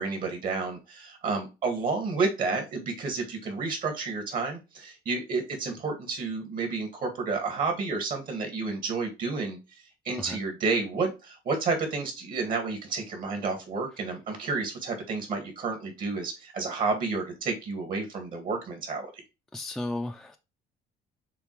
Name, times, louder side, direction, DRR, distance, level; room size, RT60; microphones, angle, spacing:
voice 1, 0.0-9.6 10.1-19.1, right 4 dB, 55° right, 4 dB, 1.7 m, -30 dB
voice 2, 19.5-20.4, left 1 dB, ahead, 4 dB, 0.4 m, -34 dB
6.7 x 2.4 x 3.1 m, 0.27 s
cardioid pair, 110°, 17 cm